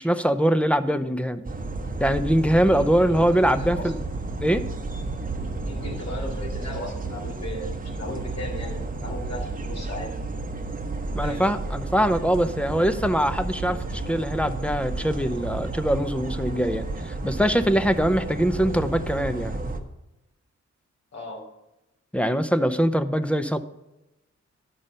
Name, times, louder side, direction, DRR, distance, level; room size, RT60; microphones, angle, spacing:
voice 1, 0.0-1.4 2.0-4.0 4.4-4.7 11.1-19.6 22.1-23.6, equal, 5° left, 10 dB, 0.6 m, -23 dB
sound 1, 1.4-19.8, right 3 dB, 30° right, 1.0 m, -32 dB
voice 2, 2.6-3.9 5.7-10.1 11.2-11.4 18.2-18.3 21.1-21.4, left 1 dB, 60° left, -1 dB, 3.2 m, -37 dB
11.0 x 5.5 x 5.2 m, 0.96 s
wide cardioid pair, 95°, 29 cm